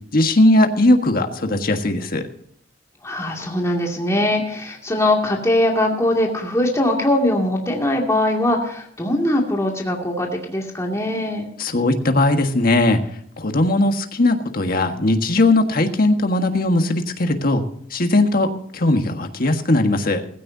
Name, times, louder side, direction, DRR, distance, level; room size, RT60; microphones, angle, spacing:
voice 1, 0.1-2.2 11.6-13.0 13.4-17.6 17.9-18.5 18.7-20.2, left 2 dB, 55° left, 5 dB, 1.6 m, -18 dB
voice 2, 3.0-11.5, left 1 dB, 15° left, -1 dB, 2.4 m, -21 dB
17.0 x 15.5 x 2.8 m, 0.64 s
head